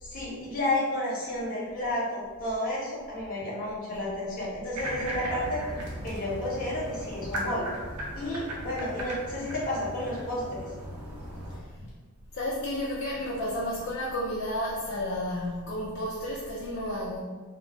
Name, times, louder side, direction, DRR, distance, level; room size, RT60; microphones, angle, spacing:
voice 1, 0.0-5.6 6.0-7.6 8.1-10.7, left 1 dB, 40° left, -5 dB, 0.9 m, -31 dB
sound 1, 4.8-11.6, equal, 85° right, 0.6 m, -37 dB
voice 2, 12.3-17.2, left 1 dB, 55° left, -4 dB, 0.3 m, -32 dB
2.2 x 2.0 x 3.7 m, 1.4 s
head